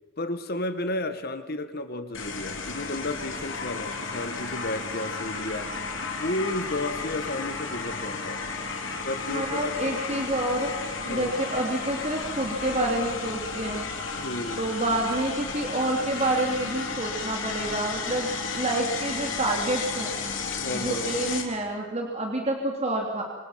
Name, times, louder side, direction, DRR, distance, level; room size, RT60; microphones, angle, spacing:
voice 1, 0.2-5.7 6.1-8.4 9.0-10.1 11.0-11.4 14.2-14.6 20.6-21.1, left 1 dB, 50° left, 9 dB, 1.8 m, -32 dB
sound 1, 2.1-21.4, left 4 dB, 70° left, 3.7 m, -33 dB
voice 2, 9.3-10.7 11.0-13.9 14.6-20.2 20.7-23.2, right 1 dB, 35° right, 0 dB, 3.1 m, -28 dB
26.5 x 26.0 x 5.9 m, 1.2 s
head